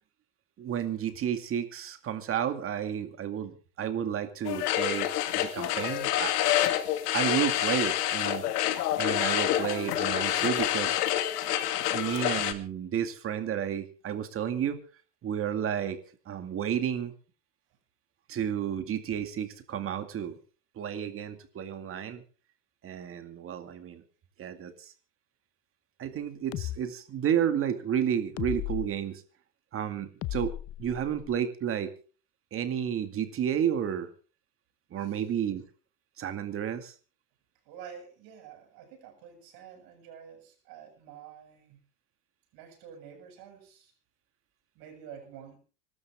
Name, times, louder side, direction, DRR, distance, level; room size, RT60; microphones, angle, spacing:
voice 1, 0.6-6.4 7.1-8.5 9.0-10.9 11.9-14.8 15.2-16.0 16.3-17.1 18.3-20.4 20.8-22.2 22.8-24.0 24.4-24.9 26.0-29.2 29.7-30.5 30.8-31.9 32.5-34.1 34.9-35.6 36.2-36.9, right 9 dB, 30° right, 9 dB, 2.2 m, -31 dB
sound 1, 4.4-12.5, left 12 dB, 85° left, 2.2 m, -28 dB
sound 2, 26.5-26.8 28.4-28.9 30.2-31.4, left 15 dB, 30° left, 0.7 m, -35 dB
voice 2, 37.7-41.8 42.5-43.9 44.7-45.6, right 8 dB, 50° right, 7 dB, 7.5 m, -49 dB
25.0 x 13.0 x 3.6 m, 0.37 s
supercardioid pair, 140°, 46 cm